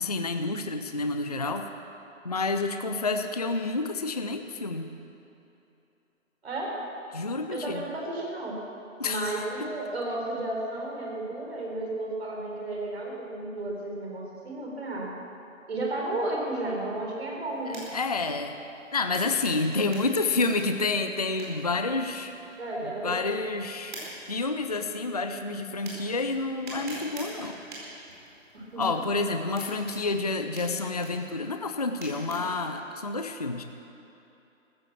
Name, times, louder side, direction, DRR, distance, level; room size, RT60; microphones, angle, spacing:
voice 1, 0.0-1.7 2.2-4.9 7.1-7.8 9.0-9.7 17.7-18.6 18.9-22.3 22.8-24.0 24.3-27.6 28.8-33.6, left 3 dB, 30° left, 7 dB, 0.5 m, -29 dB
voice 2, 6.4-6.8 7.5-8.6 9.0-15.1 15.7-17.8 22.6-23.3 28.5-29.0, right 2 dB, 50° right, -2 dB, 4.2 m, -33 dB
sound 1, 17.5-32.6, right 1 dB, 35° right, 4.6 m, -46 dB
14.5 x 12.0 x 7.4 m, 2.9 s
figure-of-eight pair, 150°, 40 cm